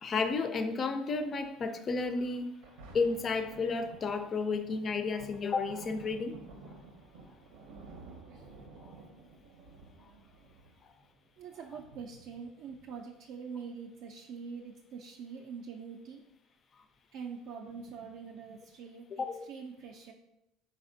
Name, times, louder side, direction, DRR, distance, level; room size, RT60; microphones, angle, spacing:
voice 1, 0.0-2.5 2.9-6.4 8.8-8.9 19.1-19.4, left 4 dB, 30° left, 9 dB, 0.3 m, -32 dB
Thunder, 2.3-13.3 13.9-14.0, right 3 dB, 90° right, 0.7 m, -53 dB
voice 2, 11.4-16.2 17.1-20.1, right 6 dB, 55° right, 1 dB, 0.3 m, -44 dB
4.2 x 4.1 x 2.6 m, 0.89 s
cardioid pair, 150°, 0 cm